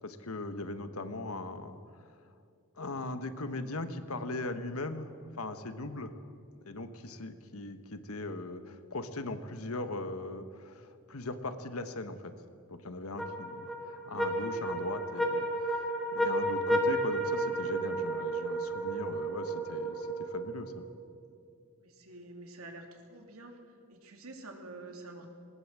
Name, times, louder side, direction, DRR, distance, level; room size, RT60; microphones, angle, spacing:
voice 1, 0.0-2.0 2.8-6.2 6.6-12.3 12.7-20.8, left 2 dB, 75° left, 9 dB, 1.4 m, -39 dB
sound 1, 13.2-20.7, right 1 dB, ahead, 2.2 m, -32 dB
voice 2, 21.8-23.6 23.9-25.3, right 2 dB, 70° right, 3 dB, 3.0 m, -48 dB
20.0 x 19.0 x 7.6 m, 2.4 s
head